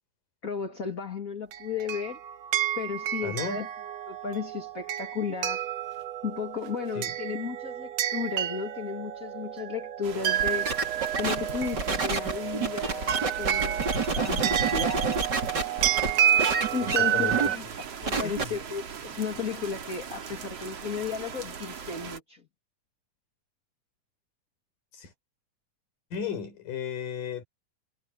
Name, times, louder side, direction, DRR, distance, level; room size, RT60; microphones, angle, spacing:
voice 1, 0.4-2.2 2.8-3.7 4.1-5.6 6.2-10.7 11.2-15.2 16.7-17.6 18.0-22.4, left 6 dB, 25° left, 2.8 m, -34 dB
sound 1, 1.5-17.6, right 10 dB, 80° right, 1.2 m, -30 dB
voice 2, 3.2-3.6 7.0-7.1 16.8-17.6 18.2-18.5 24.9-25.1 26.1-27.4, left 7 dB, 85° left, 6.2 m, -35 dB
sound 2, 10.0-22.2, right 7 dB, 50° right, 3.1 m, -40 dB
sound 3, 10.4-16.1 16.4-17.0 17.3-17.5 17.8-18.4, right 4 dB, 30° right, 3.9 m, -28 dB
omnidirectional pair, 3.7 m